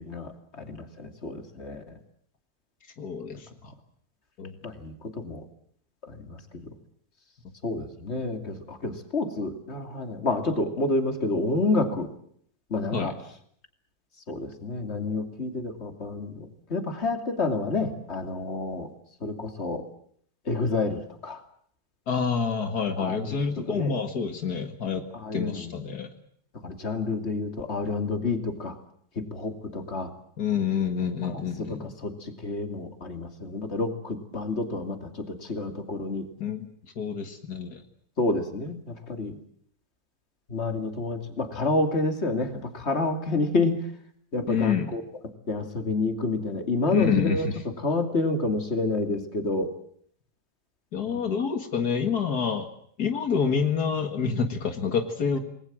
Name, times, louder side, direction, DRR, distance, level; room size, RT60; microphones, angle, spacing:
voice 1, 0.0-2.0 4.6-5.4 6.0-6.4 6.7-6.8 7.6-12.1 12.7-13.2 14.3-18.9 19.2-19.8 20.4-21.4 23.0-23.9 25.1-25.7 26.6-28.8 29.2-30.1 31.2-36.3 38.2-39.4 40.5-43.8 44.3-45.0 45.5-49.8 51.1-51.2, left 2 dB, 45° left, 7 dB, 3.0 m, -29 dB
voice 2, 3.0-3.7 4.4-4.5 12.9-13.1 22.1-25.0 25.3-26.1 30.4-31.9 36.4-36.7 37.0-37.8 44.5-44.9 46.9-47.4 50.9-52.7 53.0-55.4, left 6 dB, 80° left, 7 dB, 2.4 m, -27 dB
27.5 x 20.5 x 7.6 m, 0.63 s
omnidirectional pair, 1.7 m